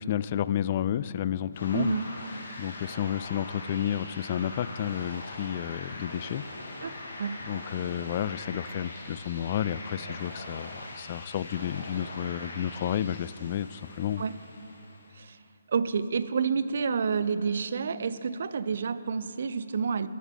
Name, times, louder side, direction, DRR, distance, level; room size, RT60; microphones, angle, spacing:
voice 1, 0.0-1.9 2.6-6.4 7.5-14.2, left 10 dB, 35° left, 16 dB, 0.3 m, -31 dB
sound 1, 1.5-15.2, left 2 dB, 60° left, 2.6 m, -42 dB
voice 2, 1.7-2.1 6.8-6.9 7.2-7.4 10.1-10.2 14.2-14.3 15.1-15.4 15.7-20.1, right 5 dB, 55° right, 14 dB, 0.6 m, -29 dB
22.5 x 10.5 x 3.6 m, 2.7 s
figure-of-eight pair, 140°, 0 cm